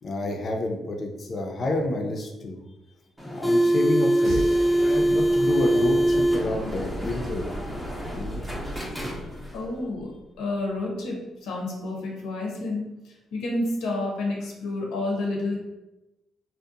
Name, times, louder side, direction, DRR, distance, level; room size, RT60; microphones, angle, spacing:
voice 1, 0.0-2.6 3.2-4.4 4.8-7.4 8.1-8.4, left 2 dB, 45° left, 2 dB, 0.5 m, -29 dB
sound 1, 3.2-9.6, right 1 dB, 5° right, 0.6 m, -24 dB
sound 2, 4.2-10.2, right 1 dB, 85° right, 1.1 m, -37 dB
voice 2, 9.5-15.6, left 2 dB, 85° left, -1 dB, 0.7 m, -30 dB
2.7 x 2.1 x 2.4 m, 0.99 s
cardioid pair, 90°, 0 cm